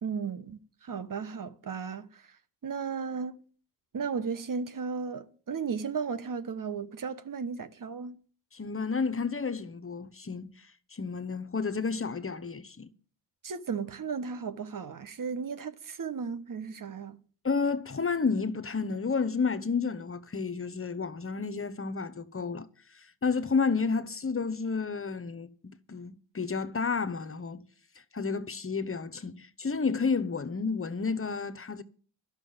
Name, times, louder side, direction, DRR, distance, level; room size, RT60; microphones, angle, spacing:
voice 1, 0.0-2.2 2.6-3.4 3.9-8.2 13.4-17.2, right 5 dB, 45° right, 1.3 m, -35 dB
voice 2, 8.5-10.5 10.9-12.9 17.4-22.7 22.9-27.6 28.1-31.8, left 5 dB, 30° left, 1.0 m, -31 dB
11.5 x 6.5 x 9.5 m
supercardioid pair, 60°, 46 cm